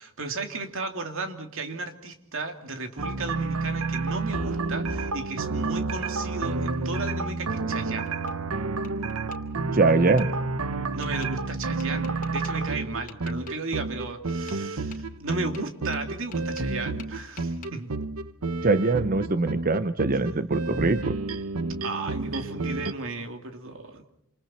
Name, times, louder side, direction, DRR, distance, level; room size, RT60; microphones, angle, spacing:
voice 1, 0.0-8.1 10.9-17.9 21.8-24.0, right 3 dB, 65° right, 5 dB, 2.8 m, -34 dB
sound 1, 3.0-22.9, right 3 dB, 80° right, 1.0 m, -30 dB
Tap, 7.3-8.4 8.8-9.4 10.2-10.3 11.0-11.3 11.8-12.5 13.1-13.6 14.3-14.6 14.9-16.7 17.0-17.7, left 6 dB, 40° left, 2.8 m, -47 dB
voice 2, 9.7-10.4 18.6-21.1, right 3 dB, 40° right, 12 dB, 0.8 m, -23 dB
28.0 x 27.5 x 4.4 m, 0.76 s
head